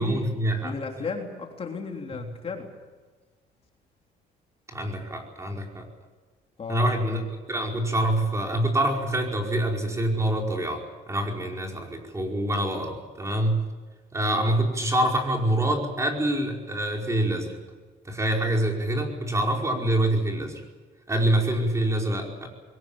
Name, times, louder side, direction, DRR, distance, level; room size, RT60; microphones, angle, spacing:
voice 1, 0.0-0.7 2.1-2.3 4.7-5.9 6.7-7.2 7.5-13.7 14.1-17.6 18.0-20.6 21.1-22.5, right 1 dB, 15° right, 1 dB, 4.9 m, -26 dB
voice 2, 0.6-2.7 6.6-6.9, left 5 dB, 35° left, 2 dB, 3.6 m, -34 dB
22.5 x 19.0 x 8.8 m, 1.3 s
cardioid pair, 110°, 17 cm